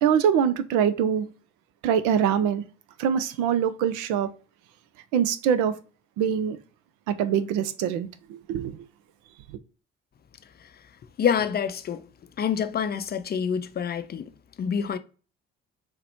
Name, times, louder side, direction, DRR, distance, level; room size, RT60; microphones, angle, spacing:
voice 1, 0.0-1.3 1.8-2.6 3.0-4.3 5.1-5.7 6.2-6.6 7.1-8.8, right 8 dB, 70° right, 0.5 m, -24 dB
voice 2, 11.2-12.1 12.4-14.3 14.6-15.0, left 7 dB, 30° left, 0.5 m, -26 dB
4.0 x 2.1 x 2.8 m
hypercardioid pair, 45°, 32 cm